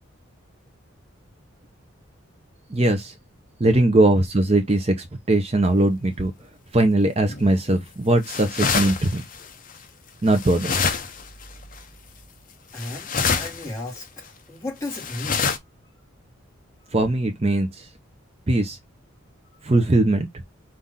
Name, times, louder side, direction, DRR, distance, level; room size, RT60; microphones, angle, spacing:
voice 1, 2.7-3.1 3.6-6.3 6.7-9.2 10.2-10.7 16.9-17.9 18.5-18.8 19.6-20.3, right 2 dB, 30° right, 0.6 m, -20 dB
sound 1, 7.3-7.6 8.2-9.7 10.3-11.4 11.7-11.8 12.8-13.7 14.0-14.1 14.9-15.6, left 5 dB, 40° left, 0.6 m, -26 dB
voice 2, 12.7-15.5, left 2 dB, 15° left, 1.4 m, -34 dB
5.6 x 2.5 x 3.6 m
head